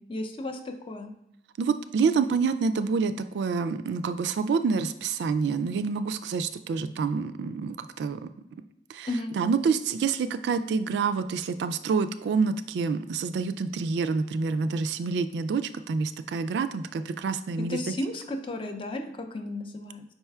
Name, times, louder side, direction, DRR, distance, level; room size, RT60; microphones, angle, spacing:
voice 1, 0.1-1.1 9.1-9.3 17.7-20.0, left 2 dB, 30° left, 6 dB, 0.5 m, -33 dB
voice 2, 1.6-8.3 8.9-17.9, right 5 dB, 70° right, 11 dB, 0.3 m, -27 dB
5.4 x 4.3 x 2.3 m, 0.79 s
head